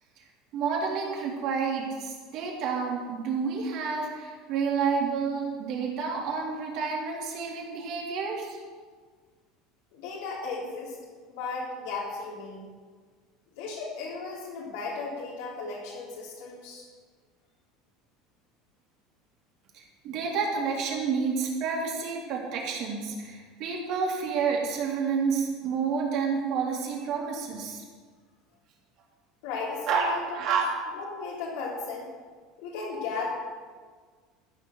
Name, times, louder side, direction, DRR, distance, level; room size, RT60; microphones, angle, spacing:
voice 1, 0.5-8.6 19.7-27.8 29.9-30.1 30.3-30.6, right 5 dB, 55° right, -2 dB, 3.4 m, -29 dB
voice 2, 9.9-11.0 11.3-12.6 13.6-16.8 29.4-30.4 30.9-32.1 32.6-33.3, left 4 dB, 80° left, -6 dB, 3.4 m, -35 dB
14.5 x 6.9 x 6.6 m, 1.5 s
supercardioid pair, 135°, 0 cm